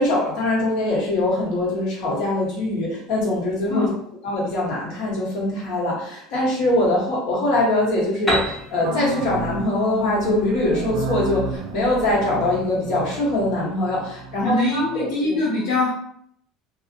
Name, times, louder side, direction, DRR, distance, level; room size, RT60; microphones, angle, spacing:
voice 1, 0.0-3.9 4.2-15.3, left 1 dB, 65° left, -5 dB, 1.2 m, -23 dB
Piano, 8.3-11.9, right 1 dB, 10° left, 0.7 m, -30 dB
sound 1, 8.8-15.1, right 2 dB, 80° right, 0.4 m, -31 dB
voice 2, 14.4-15.9, left 2 dB, 90° left, -5 dB, 0.6 m, -22 dB
2.3 x 2.1 x 2.7 m, 0.67 s
cardioid pair, 135°, 0 cm